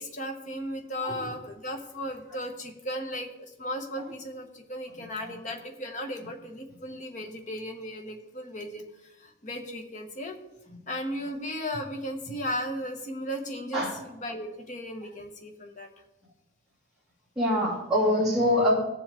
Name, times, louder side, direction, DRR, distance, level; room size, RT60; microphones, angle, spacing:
voice 1, 0.0-10.4 10.9-15.9, equal, 35° left, 3 dB, 1.1 m, -36 dB
voice 2, 1.0-1.3 5.2-5.3 10.7-10.8 13.7-14.0 17.4-18.7, left 1 dB, ahead, -9 dB, 2.7 m, -25 dB
17.0 x 7.4 x 3.6 m, 0.99 s
head